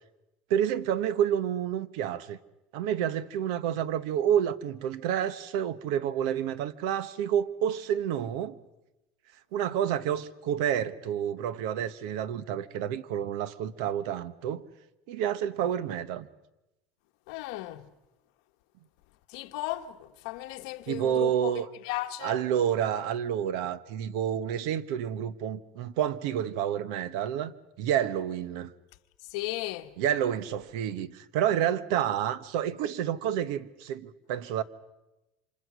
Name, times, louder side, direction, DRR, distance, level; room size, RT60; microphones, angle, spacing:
voice 1, 0.5-2.4 2.7-8.6 9.5-14.6 15.1-16.3 20.9-21.7 22.2-27.5 27.8-28.7 30.0-34.6, right 9 dB, 65° right, 1.0 m, -29 dB
voice 2, 17.3-17.9 19.3-22.4 29.3-29.9, left 16 dB, 65° left, 1.2 m, -35 dB
29.0 x 26.0 x 6.2 m
cardioid pair, 175°, 3 cm